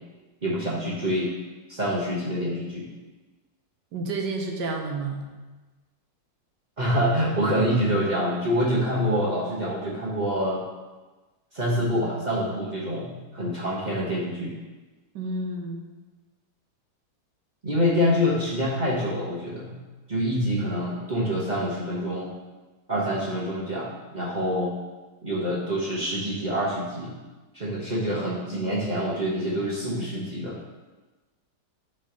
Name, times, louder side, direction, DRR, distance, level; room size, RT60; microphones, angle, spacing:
voice 1, 0.4-1.3 1.7-2.8 6.8-10.6 11.5-14.5 17.6-19.8 20.1-22.3 22.9-24.7 25.2-27.1 27.5-30.6, equal, 35° right, -6 dB, 0.7 m, -26 dB
voice 2, 3.9-5.3 15.1-15.9, right 2 dB, 75° right, 3 dB, 1.4 m, -30 dB
9.2 x 3.3 x 3.8 m, 1.2 s
omnidirectional pair, 2.0 m